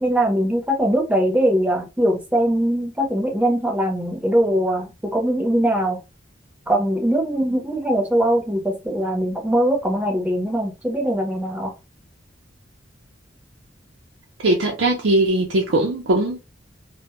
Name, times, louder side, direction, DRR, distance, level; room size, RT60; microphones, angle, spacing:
voice 1, 0.0-6.0 6.7-11.7, right 1 dB, 10° right, 0.7 m, -21 dB
voice 2, 14.4-16.4, right 1 dB, 85° right, 0.5 m, -20 dB
2.1 x 2.1 x 3.0 m
head